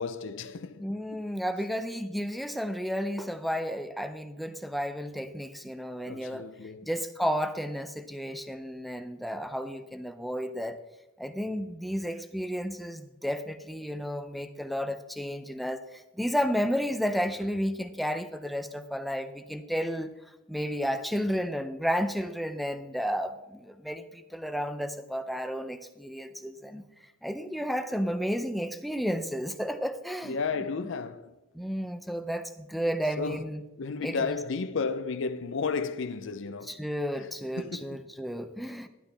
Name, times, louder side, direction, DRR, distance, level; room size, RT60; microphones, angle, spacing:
voice 1, 0.0-0.9 6.0-6.9 30.2-31.3 33.2-33.5 33.8-36.8 37.1-37.3 37.6-38.0, left 4 dB, 60° left, 0.5 m, -33 dB
voice 2, 0.8-6.5 6.8-10.8 11.2-20.1 20.5-26.8 27.2-30.4 31.5-33.6 34.0-34.4 36.7-38.9, equal, ahead, 0.5 m, -32 dB
11.5 x 11.0 x 3.4 m
head